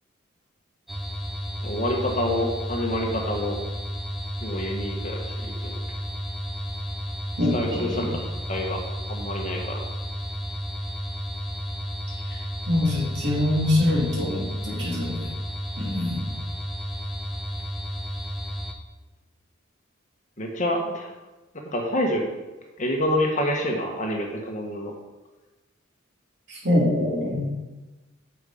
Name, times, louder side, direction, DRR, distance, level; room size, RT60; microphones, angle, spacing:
sound 1, 0.9-18.7, equal, ahead, 0.8 m, -32 dB
voice 1, 1.6-3.6 4.4-5.7 7.5-8.1 8.5-8.8 9.1-9.8 20.4-21.1 21.7-22.2 22.8-24.9, left 1 dB, 35° left, 1 dB, 1.3 m, -27 dB
voice 2, 7.4-8.1 12.3-12.4 12.7-15.3 15.8-16.3 26.5-27.5, left 1 dB, 55° right, -5 dB, 3.0 m, -24 dB
9.2 x 6.9 x 5.1 m, 1.1 s
head